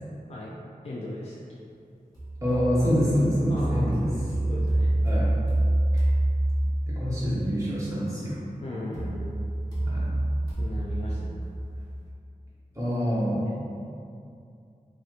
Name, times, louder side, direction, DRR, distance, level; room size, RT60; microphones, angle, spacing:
voice 1, 0.8-1.4 3.5-4.1 4.5-4.9 8.6-9.5 10.6-11.4, left 1 dB, 45° left, -5 dB, 0.4 m, -37 dB
sound 1, 2.2-7.1 8.9-11.9, right 1 dB, 25° left, 1.1 m, -27 dB
voice 2, 2.4-4.1 5.0-5.4 5.9-6.0 6.9-8.4 9.8-10.1 12.7-13.5, equal, 20° right, -10 dB, 1.0 m, -26 dB
3.2 x 2.7 x 2.4 m, 2.5 s
wide cardioid pair, 60°, 15 cm